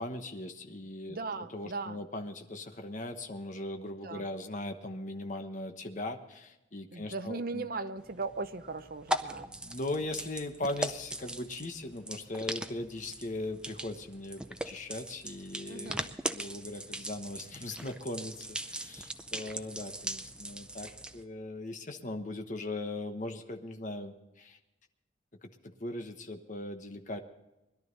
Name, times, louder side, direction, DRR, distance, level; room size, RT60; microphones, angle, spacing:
voice 1, 0.0-1.2 1.5-7.7 9.5-24.6 25.4-27.2, left 2 dB, 40° left, 5 dB, 1.2 m, -39 dB
voice 2, 1.1-2.0 4.0-4.3 6.9-9.5 15.7-16.1, right 3 dB, 50° right, 9 dB, 0.8 m, -38 dB
sound 1, 8.0-21.2, right 1 dB, 5° right, 0.5 m, -40 dB
21.0 x 12.0 x 4.0 m, 0.97 s
head